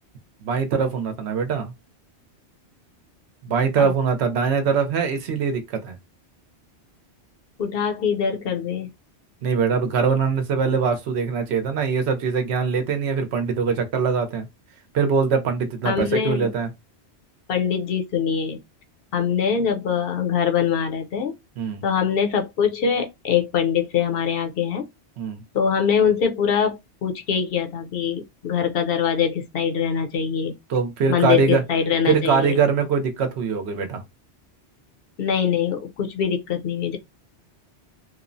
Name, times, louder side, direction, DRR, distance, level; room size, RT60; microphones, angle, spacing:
voice 1, 0.4-1.7 3.4-6.0 9.4-14.5 14.9-16.7 21.6-21.8 25.2-25.4 30.7-31.6 32.1-34.0, right 5 dB, 75° right, 0.9 m, -22 dB
voice 2, 7.6-8.9 15.8-16.5 17.5-18.6 19.1-21.3 21.8-24.8 25.5-30.6 31.1-32.6 35.2-37.0, left 7 dB, 65° left, 0.7 m, -23 dB
2.9 x 2.0 x 2.5 m
omnidirectional pair, 1.1 m